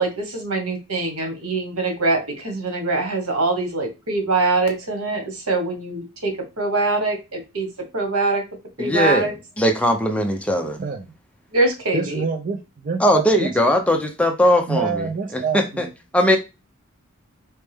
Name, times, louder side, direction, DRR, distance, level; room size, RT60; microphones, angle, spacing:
voice 1, 0.0-8.4 8.8-9.3 11.5-12.2, right 3 dB, 85° right, 1.5 m, -23 dB
voice 2, 8.8-9.3 9.6-10.8 13.0-15.0 15.3-15.9 16.1-16.4, equal, 5° left, 0.6 m, -19 dB
voice 3, 10.8-11.1 11.9-13.6 14.7-15.9, right 5 dB, 40° right, 0.5 m, -26 dB
4.4 x 3.2 x 3.5 m
head